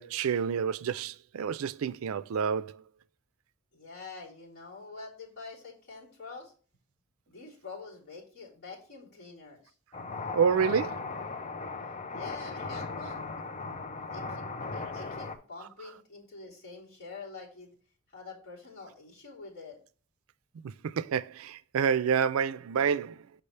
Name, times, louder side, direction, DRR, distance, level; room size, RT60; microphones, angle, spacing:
voice 1, 0.0-2.8 10.3-11.1 14.8-14.9 20.5-23.3, right 7 dB, 90° right, 0.4 m, -29 dB
voice 2, 3.7-6.5 7.3-9.7 12.1-13.2 14.1-14.5 14.9-17.7 18.1-19.8, left 4 dB, 50° left, 3.5 m, -46 dB
sound 1, 9.9-15.4, left 4 dB, 35° left, 0.6 m, -37 dB
6.7 x 5.9 x 3.2 m
head